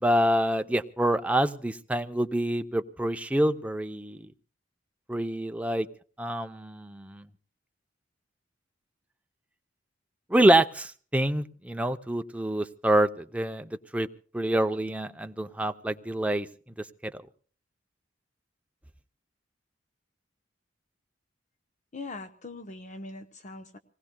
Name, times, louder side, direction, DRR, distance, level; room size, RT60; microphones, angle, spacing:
voice 1, 0.0-4.3 5.1-5.9 6.2-7.3 10.3-14.1 14.3-16.5 17.0-17.1, right 1 dB, 5° right, 7 dB, 0.6 m, -26 dB
voice 2, 21.9-23.8, left 3 dB, 40° left, 8 dB, 0.9 m, -41 dB
26.5 x 19.0 x 2.2 m, 0.43 s
head